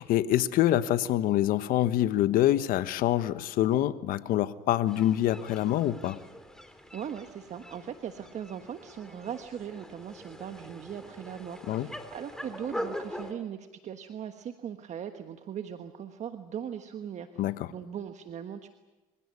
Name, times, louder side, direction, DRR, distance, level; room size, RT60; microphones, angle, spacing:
voice 1, 0.0-6.2 11.7-11.9 17.4-17.7, left 13 dB, 65° left, 13 dB, 1.2 m, -26 dB
sound 1, 4.9-13.3, equal, 5° left, 3.2 m, -43 dB
voice 2, 6.9-17.3 17.7-18.7, right 8 dB, 50° right, 7 dB, 1.4 m, -39 dB
25.5 x 16.5 x 9.7 m, 1.2 s
supercardioid pair, 85°, 16 cm